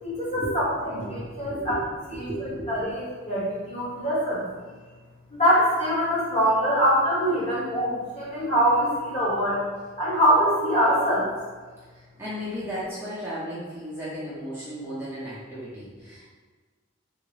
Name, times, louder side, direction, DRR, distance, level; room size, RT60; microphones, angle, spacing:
voice 1, 0.0-1.7 2.1-2.3 2.7-4.4 5.3-9.6 10.0-11.3, equal, 35° left, -9 dB, 1.2 m, -23 dB
voice 2, 1.0-1.8 2.1-2.8 11.9-16.2, equal, 10° right, -11 dB, 0.6 m, -35 dB
3.7 x 2.1 x 3.1 m, 1.4 s
head